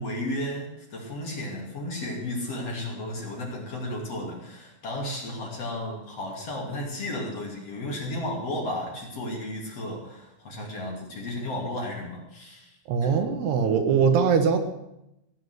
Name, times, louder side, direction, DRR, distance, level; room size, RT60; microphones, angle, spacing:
voice 1, 0.0-13.1, left 1 dB, 40° left, -1 dB, 3.3 m, -33 dB
voice 2, 12.9-14.6, right 6 dB, 80° right, 6 dB, 3.3 m, -21 dB
16.0 x 7.9 x 8.1 m, 0.85 s
omnidirectional pair, 4.7 m